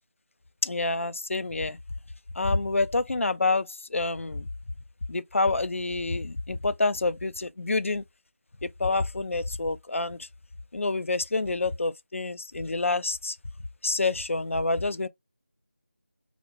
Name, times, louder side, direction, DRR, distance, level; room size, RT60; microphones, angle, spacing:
voice 1, 0.6-1.8 2.4-4.5 5.1-8.0 8.6-10.2 10.7-13.4 13.8-15.1, left 3 dB, 75° left, 0.4 m, -27 dB
2.4 x 2.1 x 2.9 m
figure-of-eight pair, 175°, 7 cm